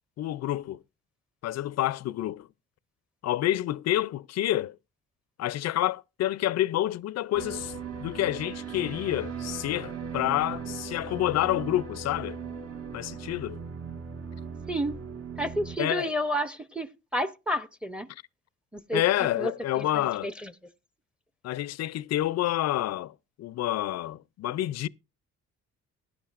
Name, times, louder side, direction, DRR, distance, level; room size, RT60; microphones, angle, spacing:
voice 1, 0.2-0.8 1.4-2.5 3.2-4.8 5.4-7.7 8.0-12.4 12.9-13.6 15.8-16.1 18.9-20.3 21.4-24.9, left 14 dB, 60° left, 0.5 m, -28 dB
sound 1, 7.3-15.8, right 5 dB, 50° right, 1.6 m, -38 dB
voice 2, 14.7-15.0 15.4-18.1 18.7-19.0 19.4-19.5 19.8-20.5, equal, 5° right, 0.7 m, -31 dB
16.0 x 10.5 x 2.5 m
cardioid pair, 90°, 30 cm